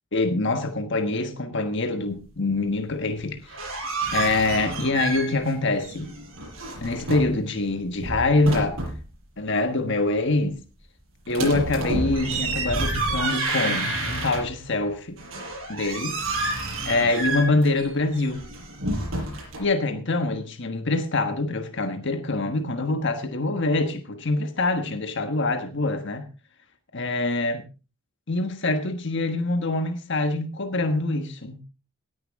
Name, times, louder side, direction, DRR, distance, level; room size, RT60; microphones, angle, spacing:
voice 1, 0.1-3.4 4.1-6.1 6.8-8.8 9.4-10.6 11.3-15.2 15.7-16.2 16.9-18.4 19.6-26.3 26.9-27.6 28.3-31.6, left 2 dB, 55° left, 1.4 m, -25 dB
sound 1, 3.3-5.5 5.8-7.4 7.8-9.1 11.3-14.7 15.2-19.6, right 2 dB, 65° right, 6.8 m, -29 dB
17.5 x 10.5 x 3.6 m
head